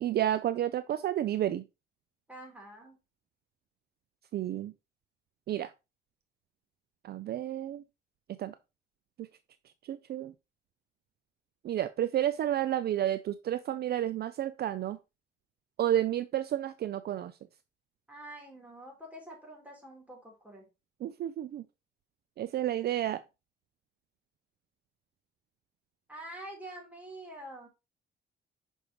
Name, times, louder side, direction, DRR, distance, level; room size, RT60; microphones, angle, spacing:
voice 1, 0.0-1.6 4.3-4.7 5.5-5.7 7.0-7.8 8.4-8.6 9.2-9.3 9.8-10.3 11.6-15.0 15.8-17.3 21.0-21.6 22.4-23.2, right 12 dB, 55° right, 0.4 m, -31 dB
voice 2, 2.3-3.0 18.1-20.7 26.1-27.7, right 1 dB, 5° right, 3.4 m, -46 dB
6.2 x 5.4 x 2.9 m
cardioid pair, 90°, 20 cm